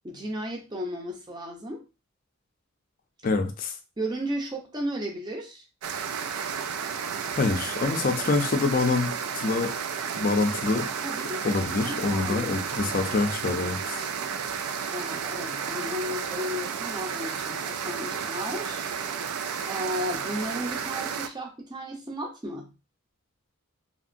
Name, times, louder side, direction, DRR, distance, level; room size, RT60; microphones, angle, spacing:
voice 1, 0.0-1.8 4.0-5.6 11.0-13.2 14.9-18.9 19.6-22.7, equal, 20° right, 1 dB, 0.6 m, -34 dB
voice 2, 3.2-3.7 7.4-9.1 9.3-9.7 10.2-10.9 11.4-14.0, left 3 dB, 40° left, 6 dB, 0.4 m, -26 dB
sound 1, 5.8-21.3, right 7 dB, 90° right, 0.4 m, -32 dB
2.8 x 2.6 x 2.5 m, 0.29 s
head